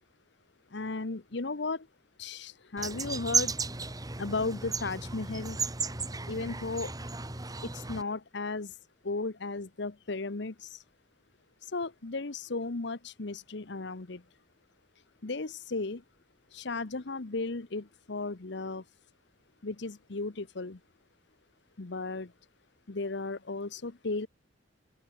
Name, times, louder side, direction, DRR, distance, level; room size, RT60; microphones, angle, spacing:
voice 1, 0.7-1.9 2.2-3.6 4.2-5.6 6.3-6.9 7.6-8.7 9.0-10.8 11.6-14.2 15.2-16.0 16.5-18.8 19.6-20.8 21.8-22.3 22.9-24.3, left 3 dB, 65° left, 1.0 m, -35 dB
sound 1, 2.8-8.0, right 4 dB, 20° right, 2.1 m, -34 dB
open air
head